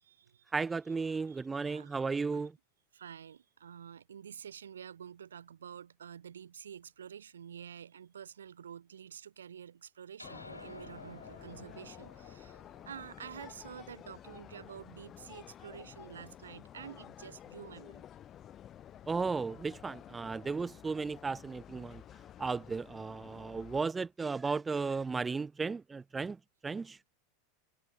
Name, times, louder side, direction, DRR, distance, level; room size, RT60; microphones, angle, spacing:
voice 1, 0.0-0.5 1.3-2.0 2.3-2.5 2.9-18.0, right 8 dB, 70° right, 1.3 m, -49 dB
voice 2, 0.5-2.5 19.1-22.0 22.4-26.4 26.6-27.0, right 4 dB, 15° right, 0.5 m, -35 dB
sound 1, 10.2-14.8, left 2 dB, 85° left, 1.2 m, -53 dB
sound 2, 10.2-23.8, left 10 dB, 30° left, 0.6 m, -52 dB
figure-of-eight pair, 85°, 0 cm